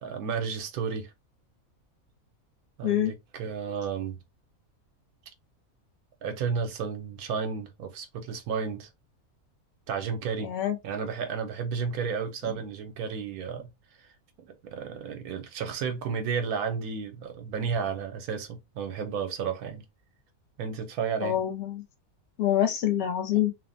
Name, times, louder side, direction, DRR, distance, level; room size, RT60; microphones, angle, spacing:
voice 1, 0.0-1.1 2.8-4.2 6.2-8.9 9.9-10.5 10.8-13.7 14.4-19.8 20.6-21.4, right 6 dB, 85° right, 1.1 m, -32 dB
voice 2, 2.8-3.1 10.4-10.8 21.2-21.8 22.4-23.5, left 11 dB, 65° left, 0.7 m, -26 dB
3.0 x 2.1 x 2.5 m
omnidirectional pair, 1.5 m